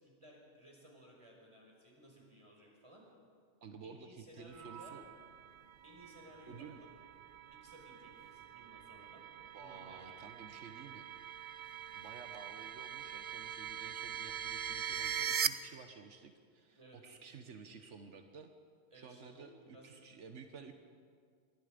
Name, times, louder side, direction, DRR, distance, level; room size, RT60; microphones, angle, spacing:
voice 1, 0.0-3.0 3.8-4.9 5.8-6.7 7.5-9.3 9.5-10.2 16.8-17.0 18.9-20.0, equal, 25° right, -2 dB, 5.5 m, -59 dB
voice 2, 3.6-5.0 6.5-6.9 9.5-11.1 11.9-18.5 18.9-20.7, right 5 dB, 85° right, 6 dB, 1.4 m, -53 dB
sound 1, 4.5-15.5, right 8 dB, 50° right, 0.8 m, -42 dB
27.0 x 22.0 x 5.2 m, 2.1 s
omnidirectional pair, 1.2 m